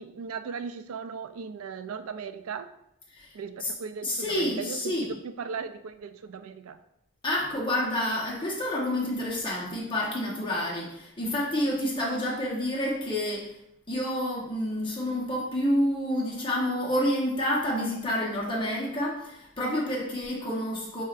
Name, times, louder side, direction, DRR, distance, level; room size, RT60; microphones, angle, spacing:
voice 1, 0.0-2.7 3.3-6.8, right 6 dB, 85° right, 10 dB, 0.4 m, -37 dB
voice 2, 4.0-5.1 7.2-13.5 13.9-21.0, left 1 dB, 25° left, -4 dB, 0.9 m, -29 dB
4.6 x 4.3 x 2.4 m, 0.79 s
head